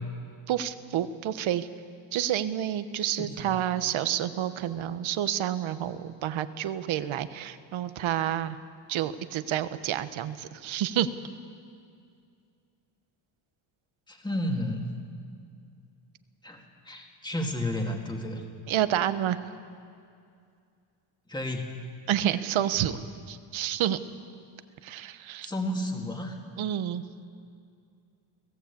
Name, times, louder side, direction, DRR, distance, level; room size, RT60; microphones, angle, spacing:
voice 1, 0.5-1.7 2.1-8.6 8.9-11.1 18.7-19.4 22.1-23.0 23.3-24.0 24.8-25.5 26.6-27.0, right 11 dB, 70° right, 12 dB, 1.1 m, -29 dB
voice 2, 3.2-3.6 14.1-14.9 16.4-18.4 21.3-21.8 25.4-26.4, left 1 dB, 10° left, 2 dB, 2.2 m, -32 dB
25.0 x 17.0 x 8.4 m, 2.3 s
cardioid pair, 150°, 49 cm